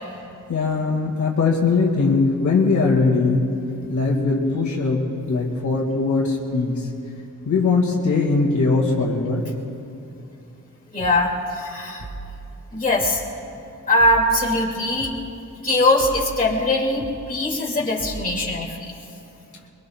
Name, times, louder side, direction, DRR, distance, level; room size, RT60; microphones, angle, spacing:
voice 1, 0.5-3.5 3.9-6.9 7.5-9.4, left 4 dB, 65° left, -1 dB, 2.1 m, -20 dB
voice 2, 10.9-12.1 12.7-13.2 13.9-15.1 15.6-18.8, left 1 dB, 25° left, -3 dB, 2.5 m, -21 dB
sound 1, 11.0-11.2 12.0-12.4 13.0-13.2 14.0-14.4 15.0-15.2 16.0-16.4 17.0-17.2 18.0-18.4, right 3 dB, 85° right, 2.4 m, -36 dB
23.5 x 23.0 x 2.4 m, 2.6 s
wide cardioid pair, 140°, 32 cm